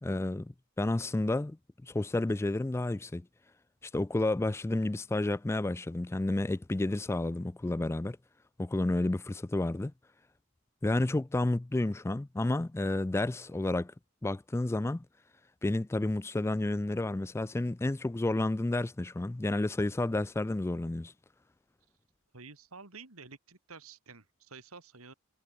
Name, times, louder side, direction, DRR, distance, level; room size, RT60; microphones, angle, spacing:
voice 1, 0.0-3.2 3.8-8.2 8.6-9.9 10.8-13.9 14.2-15.1 15.6-21.1, left 2 dB, 10° left, 0.3 m, -31 dB
voice 2, 22.3-25.1, right 4 dB, 75° right, 3.3 m, -50 dB
head